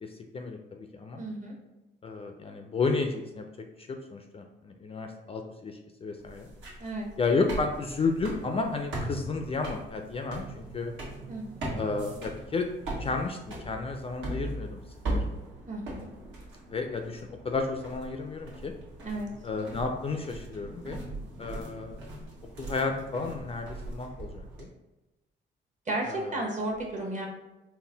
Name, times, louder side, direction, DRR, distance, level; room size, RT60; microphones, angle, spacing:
voice 1, 0.0-1.2 2.0-3.5 3.8-6.5 7.2-10.9 11.8-12.7 13.0-14.8 15.1-15.2 16.7-18.7 19.4-21.0 21.4-22.0 22.6-24.7 26.1-26.4, left 4 dB, 30° left, 4 dB, 0.3 m, -32 dB
voice 2, 1.2-1.5 6.8-7.1 11.3-11.7 15.7-16.1 19.0-19.3 25.9-27.3, right 2 dB, 40° right, 0 dB, 1.1 m, -33 dB
sound 1, 6.2-24.6, right 1 dB, 75° right, 1.3 m, -39 dB
3.9 x 2.2 x 3.8 m, 1.0 s
cardioid pair, 90°, 20 cm